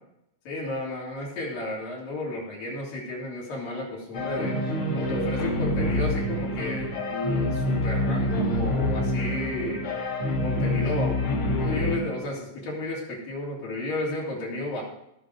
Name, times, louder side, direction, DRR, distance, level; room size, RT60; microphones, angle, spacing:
voice 1, 0.4-4.6 4.9-9.8 10.4-14.8, left 2 dB, 75° left, -4 dB, 5.0 m, -32 dB
sound 1, 4.1-12.0, left 1 dB, 45° left, 2.4 m, -26 dB
17.5 x 6.5 x 4.9 m, 0.83 s
omnidirectional pair, 4.1 m